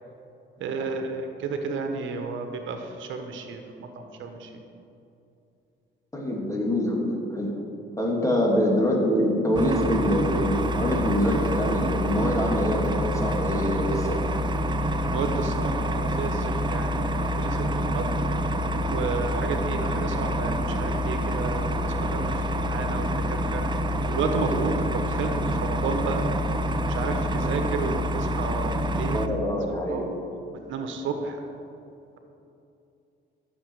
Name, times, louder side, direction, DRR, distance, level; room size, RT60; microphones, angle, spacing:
voice 1, 0.6-4.5 15.0-18.1 18.8-23.6 24.1-26.2 26.9-29.2 29.9-30.2 30.7-31.4, right 4 dB, 80° right, 5 dB, 1.2 m, -32 dB
voice 2, 6.1-7.5 8.0-14.2 29.1-30.0, equal, 15° left, -2 dB, 2.7 m, -25 dB
sound 1, 9.5-29.3, equal, 25° right, 0.6 m, -27 dB
15.5 x 6.9 x 4.8 m, 2.7 s
cardioid pair, 90°, 20 cm